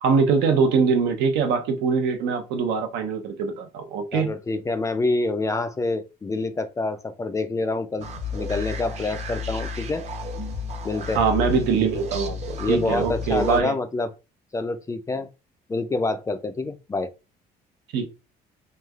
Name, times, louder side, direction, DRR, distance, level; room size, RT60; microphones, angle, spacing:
voice 1, 0.0-4.3 11.1-13.7 17.9-18.1, right 5 dB, 85° right, 0.7 m, -23 dB
voice 2, 4.1-8.1 8.3-10.0 10.8-11.2 12.6-14.1 14.5-15.3 15.7-17.1, left 3 dB, 20° left, 0.3 m, -27 dB
sound 1, 8.0-13.6, left 3 dB, 40° right, 0.7 m, -32 dB
3.1 x 2.3 x 2.3 m
cardioid pair, 110°, 17 cm